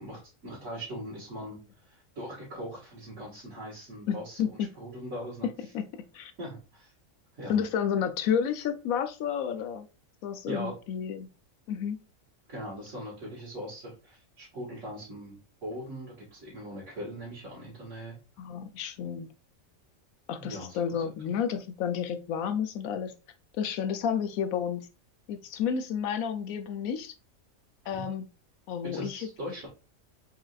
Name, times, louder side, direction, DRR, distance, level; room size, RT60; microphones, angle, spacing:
voice 1, 0.0-5.5 6.4-6.9 7.3-7.6 10.5-10.8 12.5-18.2 20.4-21.1 27.8-28.0 28.8-29.7, equal, 65° right, -7 dB, 2.1 m, -41 dB
voice 2, 4.1-4.7 5.7-5.8 6.1-6.3 7.5-9.9 10.2-11.3 11.7-12.0 18.4-19.3 20.3-23.1 23.6-24.9 25.3-27.1 27.9-28.2 28.7-29.3, left 7 dB, 90° left, 9 dB, 1.1 m, -31 dB
4.7 x 3.7 x 2.4 m, 0.31 s
omnidirectional pair, 1.4 m